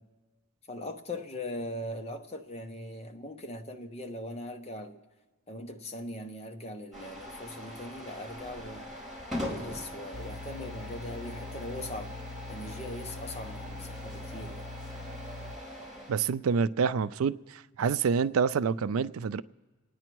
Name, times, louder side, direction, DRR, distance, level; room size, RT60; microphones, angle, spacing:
voice 1, 0.7-5.0 5.5-8.9 9.4-12.1 12.5-14.7, left 1 dB, 30° left, 0.9 m, -40 dB
sound 1, 6.9-16.1, left 1 dB, ahead, 4.7 m, -42 dB
sound 2, 10.1-15.6, left 2 dB, 45° right, 0.7 m, -43 dB
voice 2, 16.1-19.4, right 6 dB, 85° right, 0.4 m, -27 dB
28.5 x 9.6 x 4.6 m
head